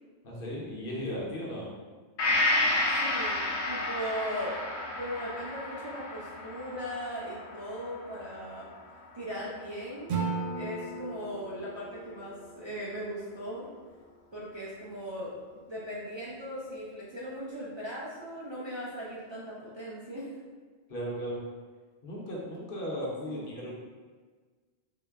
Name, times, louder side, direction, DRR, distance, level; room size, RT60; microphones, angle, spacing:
voice 1, 0.2-1.7 20.9-21.4 22.0-23.7, equal, 60° left, -3 dB, 0.9 m, -36 dB
Gong, 2.2-9.8 10.2-10.3, left 2 dB, 90° left, 0.9 m, -32 dB
voice 2, 3.0-4.6 5.0-8.7 9.1-10.1 10.5-13.7 14.3-20.3 23.2-23.5, equal, 35° right, -9 dB, 0.5 m, -38 dB
Acoustic guitar / Strum, 10.1-13.2, right 4 dB, 85° right, 0.9 m, -36 dB
3.8 x 2.1 x 3.4 m, 1.4 s
omnidirectional pair, 1.1 m